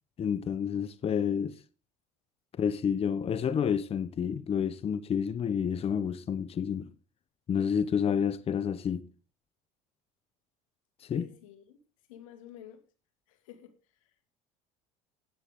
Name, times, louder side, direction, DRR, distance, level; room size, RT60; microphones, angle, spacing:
voice 1, 0.2-1.6 2.5-6.9 7.5-9.1 11.0-11.2, left 7 dB, 35° left, 1.0 m, -29 dB
voice 2, 11.1-11.8 12.1-12.8 13.3-14.3, left 11 dB, 85° left, 2.2 m, -51 dB
16.0 x 10.0 x 3.7 m
supercardioid pair, 85°, 17 cm